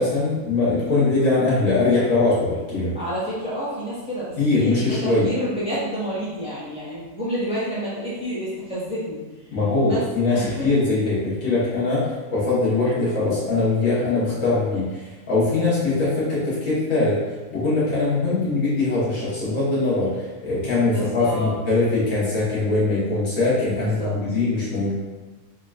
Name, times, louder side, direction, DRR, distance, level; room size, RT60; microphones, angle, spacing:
voice 1, 0.0-2.9 4.4-5.3 9.5-17.2 17.5-24.9, left 3 dB, 75° left, -9 dB, 1.8 m, -22 dB
voice 2, 2.9-9.5 9.8-10.7 20.8-21.5 23.8-24.1, equal, 5° right, -11 dB, 1.4 m, -29 dB
3.7 x 3.7 x 2.4 m, 1.2 s
omnidirectional pair, 1.4 m